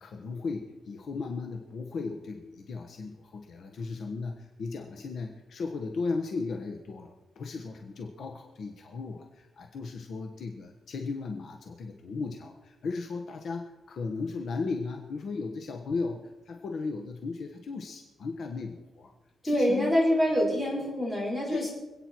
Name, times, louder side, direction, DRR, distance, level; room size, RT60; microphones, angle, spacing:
voice 1, 0.0-19.1 19.4-19.9 21.5-21.7, left 4 dB, 55° left, 3 dB, 1.2 m, -36 dB
voice 2, 19.4-21.7, equal, 10° left, -5 dB, 4.6 m, -25 dB
26.5 x 9.0 x 4.6 m, 1.0 s
wide cardioid pair, 180°, 0 cm